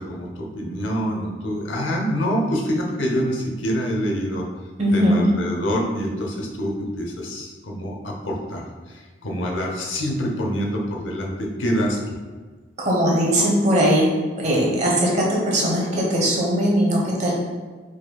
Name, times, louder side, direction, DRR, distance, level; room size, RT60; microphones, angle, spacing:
voice 1, 0.0-4.5 4.9-12.2, equal, 85° left, 0 dB, 0.8 m, -26 dB
voice 2, 4.8-5.3 12.8-14.1 14.4-17.3, equal, 35° right, -3 dB, 1.0 m, -19 dB
4.9 x 4.4 x 2.3 m, 1.4 s
head